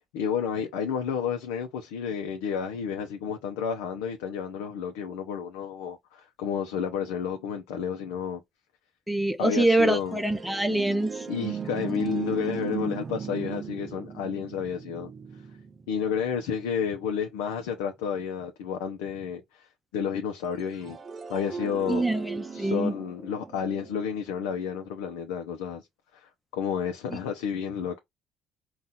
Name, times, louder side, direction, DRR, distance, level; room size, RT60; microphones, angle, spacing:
voice 1, 0.1-8.4 9.4-10.2 11.3-15.1 15.9-21.0 21.3-22.0 22.5-25.9 26.1-28.0, left 7 dB, 85° left, 0.6 m, -31 dB
voice 2, 9.1-11.3 21.9-22.9, right 2 dB, 5° right, 0.7 m, -25 dB
sound 1, 9.8-17.4 20.6-24.7, right 6 dB, 40° right, 0.5 m, -38 dB
4.1 x 2.4 x 3.8 m
supercardioid pair, 75°, 0 cm